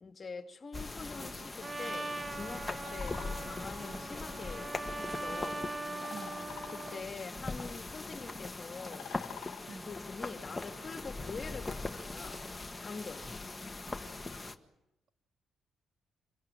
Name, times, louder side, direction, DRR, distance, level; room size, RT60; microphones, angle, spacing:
voice 1, 0.0-5.7 6.7-9.1 9.9-12.4 12.8-13.3, left 4 dB, 35° left, 2.3 m, -45 dB
sound 1, 0.7-14.5, left 3 dB, 15° left, 1.6 m, -41 dB
Trumpet, 1.6-7.1, right 2 dB, 30° right, 1.3 m, -41 dB
sound 2, 2.8-14.5, left 12 dB, 80° left, 0.8 m, -54 dB
voice 2, 6.1-6.5 9.7-9.9, right 4 dB, 55° right, 1.8 m, -48 dB
26.5 x 17.5 x 9.1 m
cardioid pair, 90°, 0 cm